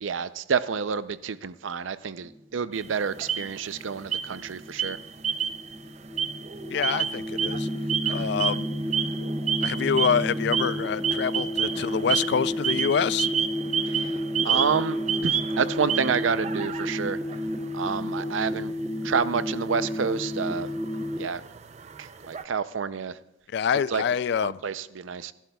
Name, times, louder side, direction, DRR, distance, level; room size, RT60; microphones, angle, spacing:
voice 1, 0.0-5.0 8.0-8.3 14.4-15.0 15.2-17.2 17.7-18.7 19.0-20.7 21.2-21.4 22.0-23.1 23.9-24.0 24.4-25.3, right 6 dB, 85° right, 0.5 m, -28 dB
sound 1, 2.2-21.3, equal, 5° right, 0.8 m, -32 dB
sound 2, 2.7-3.8 4.1-4.5 4.8-5.8 6.0-22.4, right 8 dB, 35° right, 0.4 m, -31 dB
voice 2, 6.7-7.7 8.1-8.7 9.6-13.3 23.5-24.6, left 7 dB, 60° left, 0.3 m, -26 dB
26.5 x 12.0 x 2.3 m
head